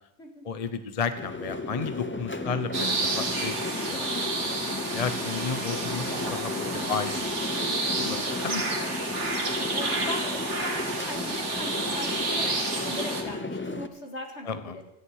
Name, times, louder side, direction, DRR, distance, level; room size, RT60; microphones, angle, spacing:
voice 1, 0.4-4.1 4.4-7.1 7.9-8.8 14.4-14.8, left 5 dB, 35° left, 10 dB, 0.8 m, -33 dB
sound 1, 1.2-13.9, left 2 dB, 15° left, 0.6 m, -34 dB
sound 2, 2.7-13.2, right 3 dB, 75° right, 2.3 m, -30 dB
voice 2, 6.6-7.0 9.7-14.8, left 2 dB, 65° left, 4 dB, 2.5 m, -39 dB
17.0 x 14.5 x 4.8 m, 0.90 s
omnidirectional pair, 1.2 m